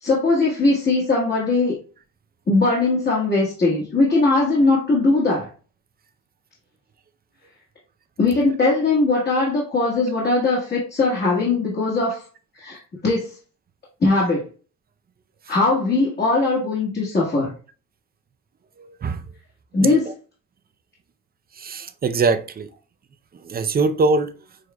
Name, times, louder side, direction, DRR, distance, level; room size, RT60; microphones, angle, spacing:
voice 1, 0.0-1.8 2.5-5.5 8.2-12.2 12.5-13.3 14.0-14.5 15.5-17.5 19.7-20.1, left 3 dB, 35° left, 1.5 m, -20 dB
voice 2, 18.8-19.2 19.8-20.1 21.6-22.7 23.4-24.3, right 3 dB, 30° right, 0.5 m, -23 dB
6.3 x 2.5 x 2.2 m
cardioid pair, 90°, 30 cm